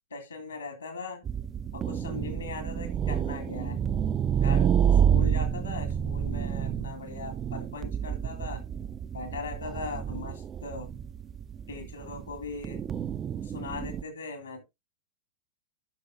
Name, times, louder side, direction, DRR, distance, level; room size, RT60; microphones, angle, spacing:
voice 1, 0.1-1.2 1.7-3.8 4.4-8.6 9.1-10.9 11.7-12.8 13.4-14.6, left 4 dB, 75° left, 2.4 m, -39 dB
sound 1, 1.3-14.0, right 8 dB, 25° right, 0.5 m, -29 dB
15.5 x 6.1 x 2.7 m
figure-of-eight pair, 90°, 0 cm